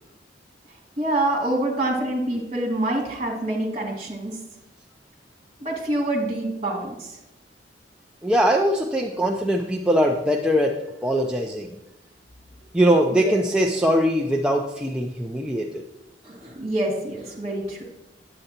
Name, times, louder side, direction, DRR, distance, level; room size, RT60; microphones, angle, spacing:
voice 1, 1.0-4.4 5.6-7.2 13.2-13.4 16.2-17.8, right 1 dB, 35° right, -1 dB, 2.2 m, -26 dB
voice 2, 8.2-11.8 12.7-15.8, equal, 5° right, 0 dB, 0.4 m, -21 dB
8.7 x 7.9 x 2.8 m, 0.96 s
head